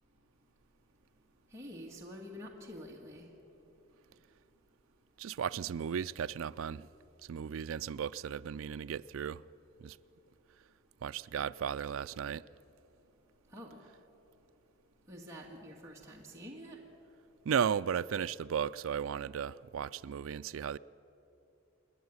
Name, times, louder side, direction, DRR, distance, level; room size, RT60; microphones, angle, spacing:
voice 1, 1.5-3.2 13.5-13.8 15.1-16.8, equal, 15° right, 1.8 m, -47 dB
voice 2, 5.2-6.9 7.2-9.4 9.8-10.0 11.0-12.4 17.4-20.8, right 7 dB, 70° right, 0.4 m, -35 dB
27.0 x 10.5 x 9.5 m
head